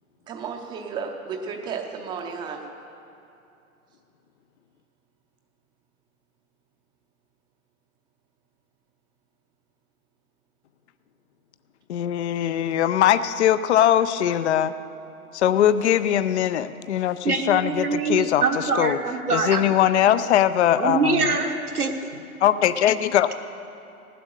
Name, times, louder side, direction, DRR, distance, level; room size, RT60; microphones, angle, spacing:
voice 1, 0.3-2.6, right 5 dB, 10° right, 3 dB, 0.6 m, -33 dB
voice 2, 11.9-14.7 15.3-19.0 19.3-21.3 22.4-23.3, left 10 dB, 50° left, 13 dB, 0.6 m, -21 dB
voice 3, 17.2-19.7 20.8-21.9, right 4 dB, 80° right, 3 dB, 1.4 m, -24 dB
18.0 x 7.7 x 6.6 m, 2.8 s
figure-of-eight pair, 125°, 44 cm